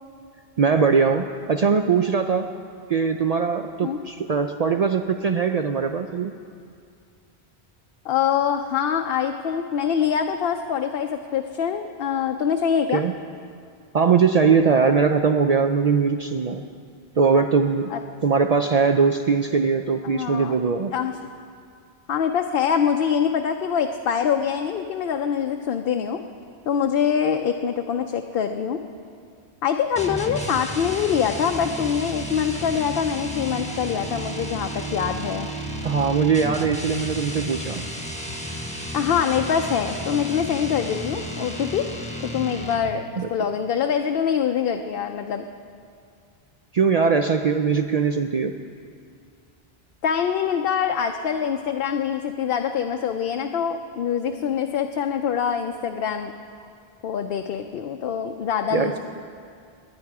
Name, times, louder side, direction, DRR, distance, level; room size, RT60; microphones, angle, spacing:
voice 1, 0.6-2.5 2.9-6.3 12.9-13.1 13.9-16.6 17.2-17.9 18.2-20.9 35.8-37.8 43.2-43.3 46.7-48.5 58.7-59.0, right 5 dB, 55° right, 6 dB, 0.5 m, -21 dB
voice 2, 8.0-13.0 17.9-18.0 20.0-20.6 20.9-21.1 22.1-26.2 26.7-28.8 29.6-35.5 38.9-41.9 42.2-45.4 50.0-56.3 57.0-59.0, left 7 dB, 70° left, 5 dB, 0.8 m, -24 dB
sound 1, 30.0-43.0, equal, 5° left, 1.1 m, -32 dB
19.0 x 9.9 x 4.8 m, 2.3 s
omnidirectional pair, 1.0 m